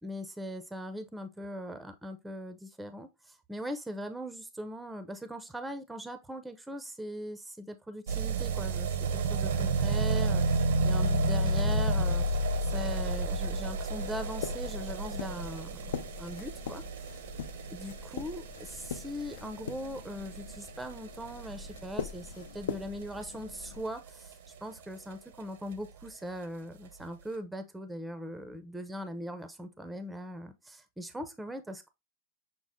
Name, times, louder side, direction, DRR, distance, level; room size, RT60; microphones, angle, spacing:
voice 1, 0.0-12.3 12.6-16.8 17.7-31.9, equal, 5° right, 0.5 m, -40 dB
sound 1, 8.1-24.8 25.1-25.2 25.4-25.5 25.7-25.8 26.1-26.2 26.9-27.0, right 2 dB, 80° right, 0.7 m, -32 dB
sound 2, 13.4-23.8, left 7 dB, 80° left, 0.5 m, -43 dB
6.1 x 2.1 x 3.4 m
supercardioid pair, 145°, 0 cm